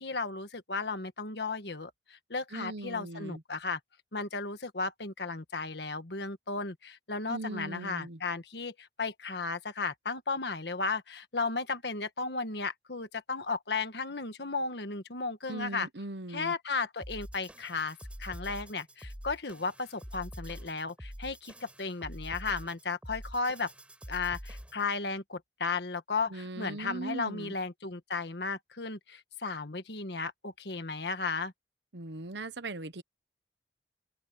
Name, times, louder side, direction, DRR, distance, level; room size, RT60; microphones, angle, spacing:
voice 1, 0.0-3.8 4.1-15.9 16.3-23.7 24.1-31.5, left 4 dB, 65° left, 1.6 m, -35 dB
voice 2, 2.5-3.4 7.3-8.2 15.5-16.5 26.3-27.5 31.9-33.0, right 2 dB, 70° right, 1.1 m, -39 dB
sound 1, 17.0-24.9, equal, 5° right, 4.5 m, -45 dB
open air
head